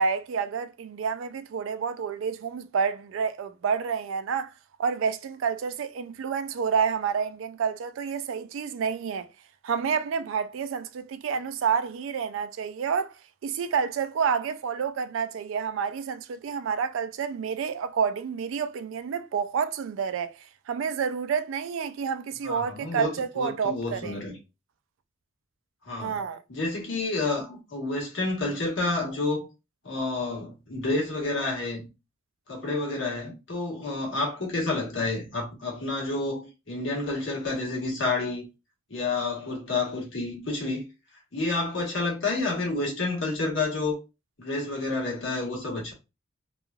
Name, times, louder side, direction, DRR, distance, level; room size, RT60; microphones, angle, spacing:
voice 1, 0.0-4.5 4.8-9.3 9.6-13.1 13.4-24.2 26.0-26.4, right 6 dB, 70° right, 0.3 m, -29 dB
voice 2, 22.4-24.4 25.8-26.2 26.5-29.5 29.8-31.9 32.5-38.4 38.9-40.8 41.3-44.0 44.4-45.9, left 3 dB, 65° left, 1.1 m, -29 dB
3.0 x 2.3 x 2.3 m
head